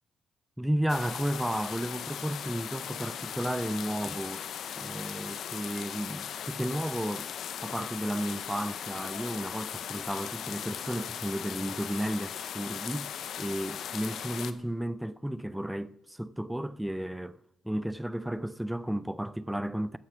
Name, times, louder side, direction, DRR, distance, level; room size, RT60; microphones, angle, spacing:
voice 1, 0.6-4.5 4.8-7.3 7.6-13.1 13.4-17.4 17.6-20.0, right 1 dB, 5° right, 0.4 m, -33 dB
sound 1, 0.9-14.5, left 9 dB, 70° left, 0.7 m, -38 dB
14.5 x 6.5 x 6.0 m
cardioid pair, 90°, 0 cm